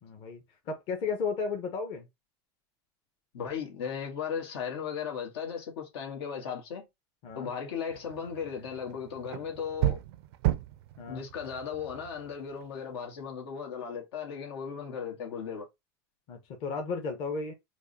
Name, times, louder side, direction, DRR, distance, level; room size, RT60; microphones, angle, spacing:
voice 1, 0.0-2.1 7.2-7.5 11.0-11.2 16.3-17.5, left 4 dB, 45° left, 1.0 m, -34 dB
voice 2, 3.3-6.8 7.3-10.0 11.1-15.6, left 7 dB, 85° left, 1.5 m, -36 dB
sound 1, 7.9-12.8, right 15 dB, 75° right, 0.4 m, -34 dB
4.6 x 2.3 x 2.7 m
supercardioid pair, 135°, 13 cm